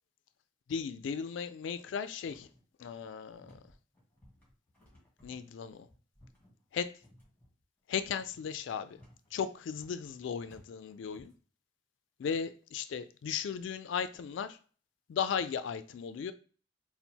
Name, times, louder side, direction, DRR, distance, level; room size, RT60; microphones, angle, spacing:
voice 1, 0.7-2.5 2.8-3.6 5.2-5.9 6.7-6.9 7.9-9.0 9.3-11.3 12.2-14.6 15.1-16.3, left 7 dB, 85° left, 0.3 m, -36 dB
sound 1, 2.2-11.4, left 1 dB, 10° left, 1.8 m, -61 dB
4.0 x 2.1 x 4.4 m
head